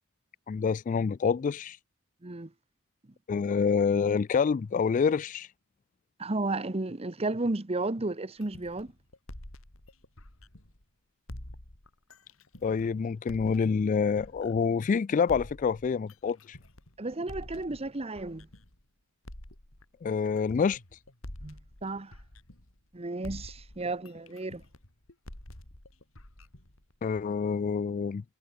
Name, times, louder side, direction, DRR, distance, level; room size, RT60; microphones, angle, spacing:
voice 1, 0.5-1.8 3.3-5.5 12.6-16.6 20.0-20.8 27.0-28.2, left 5 dB, 40° left, 0.3 m, -27 dB
voice 2, 6.2-8.9 17.0-18.5 21.4-22.1 22.9-24.6, right 2 dB, 30° right, 1.0 m, -33 dB
sound 1, 8.4-10.8 11.3-14.8 15.3-18.8 19.2-22.9 23.2-27.3, left 1 dB, 80° left, 3.7 m, -47 dB
head